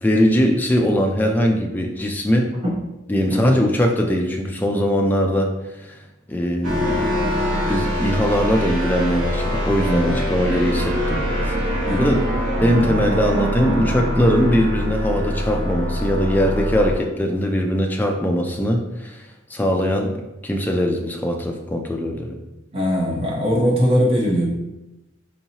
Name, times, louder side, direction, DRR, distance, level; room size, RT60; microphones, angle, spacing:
voice 1, 0.0-2.5 3.1-5.5 5.8-6.0 6.3-7.1 7.7-11.6 11.9-12.3 12.6-20.1 20.4-22.3, equal, 10° left, 2 dB, 0.3 m, -21 dB
sound 1, 6.6-16.9, equal, 75° right, 1.0 m, -24 dB
voice 2, 9.8-10.2 11.9-12.1 12.6-12.8 22.7-24.5, equal, 30° right, -3 dB, 0.8 m, -20 dB
4.5 x 2.8 x 2.8 m, 0.98 s
head